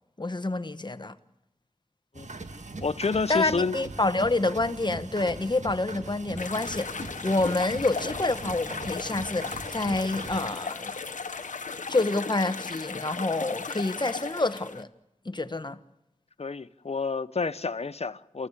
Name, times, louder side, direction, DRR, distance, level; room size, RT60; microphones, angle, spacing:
voice 1, 0.2-1.1 3.3-10.9 11.9-14.9 15.2-15.8, left 2 dB, 35° left, 1.2 m, -28 dB
sound 1, 2.1-10.4, right 2 dB, 70° right, 1.8 m, -40 dB
voice 2, 2.8-3.8 16.4-18.5, left 4 dB, 55° left, 0.8 m, -29 dB
sound 2, 6.4-14.8, left 4 dB, 85° left, 1.1 m, -36 dB
28.5 x 15.5 x 8.3 m
wide cardioid pair, 45°, 13 cm